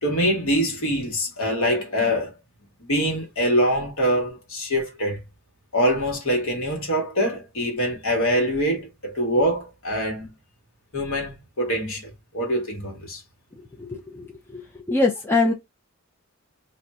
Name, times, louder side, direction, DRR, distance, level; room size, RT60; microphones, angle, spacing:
voice 1, 0.0-2.3 2.8-5.2 5.7-10.3 10.9-13.2, equal, 65° left, 1.3 m, -24 dB
voice 2, 13.8-14.2 14.5-14.6 14.9-15.5, left 3 dB, 10° left, 0.4 m, -22 dB
2.5 x 2.3 x 4.1 m
head